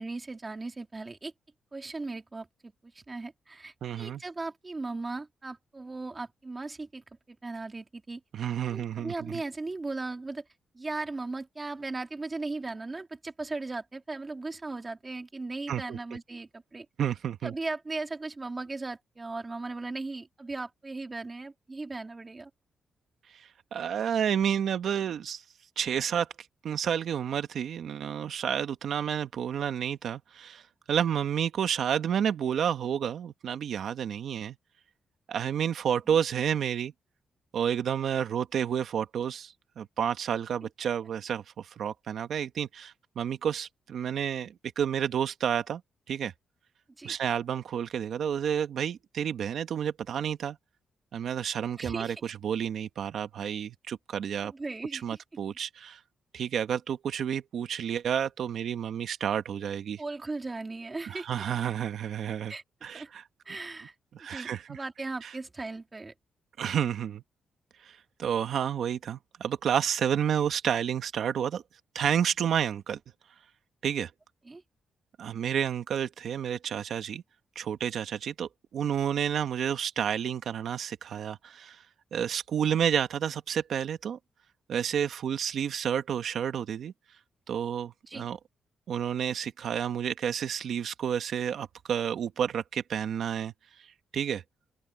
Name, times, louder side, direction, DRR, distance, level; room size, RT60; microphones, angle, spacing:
voice 1, 0.0-1.3 1.7-8.2 8.7-10.4 10.7-16.9 17.4-22.5 47.0-47.2 51.8-52.3 54.4-55.2 60.0-61.3 62.5-63.1 63.4-63.9 64.3-66.1 74.5-74.6 88.1-88.3, right 3 dB, 20° right, 2.8 m, -37 dB
voice 2, 3.8-4.2 8.3-9.4 15.7-16.0 17.0-17.5 23.7-25.4 25.8-26.3 26.6-30.6 30.9-34.6 35.3-36.9 37.5-45.8 46.1-46.3 47.0-50.6 51.1-54.5 54.9-56.0 56.3-60.0 61.0-62.5 62.8-63.2 64.1-64.8 65.2-65.3 66.6-67.2 67.8-71.6 71.9-73.0 73.8-74.1 75.2-77.2 77.5-81.8 82.1-84.2 84.7-86.9 87.5-88.4 88.9-93.5 94.1-94.4, right 8 dB, 60° right, 1.5 m, -30 dB
open air
wide cardioid pair, 155°, 0 cm